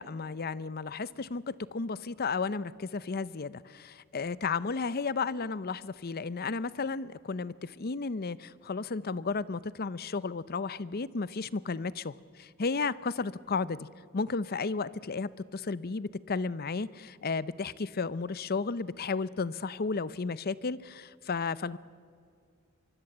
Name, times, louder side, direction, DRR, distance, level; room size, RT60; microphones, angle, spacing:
voice 1, 0.0-13.9 14.1-21.8, left 4 dB, 45° left, 17 dB, 0.6 m, -33 dB
24.0 x 23.5 x 7.9 m, 2.4 s
head